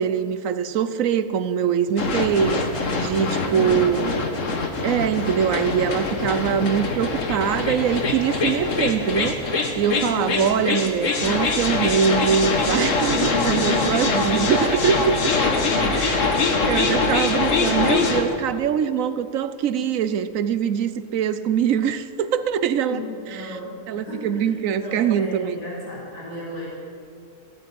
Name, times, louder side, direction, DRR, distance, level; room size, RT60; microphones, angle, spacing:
voice 1, 0.0-2.6 2.9-4.1 4.8-9.4 9.8-15.3 16.0-16.4 16.7-23.0 23.5-23.6 23.9-25.6, right 8 dB, 65° right, 13 dB, 1.1 m, -23 dB
sound 1, 2.0-18.2, left 3 dB, 55° left, 1.7 m, -23 dB
voice 2, 3.3-4.2 9.9-10.7 13.1-14.4 14.9-15.2 15.7-16.0 17.5-18.5 22.9-26.7, left 1 dB, 80° left, -5 dB, 4.9 m, -33 dB
16.0 x 8.8 x 9.4 m, 2.6 s
omnidirectional pair, 1.6 m